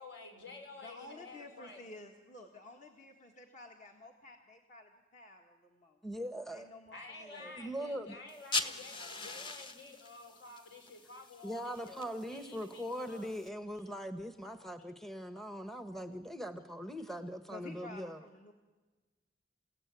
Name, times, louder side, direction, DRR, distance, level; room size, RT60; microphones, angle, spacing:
voice 1, 0.0-1.8 6.9-12.0 12.3-13.4, left 3 dB, 70° left, 3 dB, 5.2 m, -51 dB
voice 2, 0.8-7.6 8.1-8.2 8.8-8.9 9.2-9.4 13.7-13.9 17.5-18.5, left 2 dB, 40° left, 3 dB, 1.7 m, -52 dB
voice 3, 6.0-6.7 7.4-8.1 11.4-18.2, equal, ahead, 8 dB, 0.9 m, -41 dB
sound 1, 8.3-13.5, left 3 dB, 25° left, 1.2 m, -42 dB
28.5 x 16.5 x 9.3 m, 1.3 s
head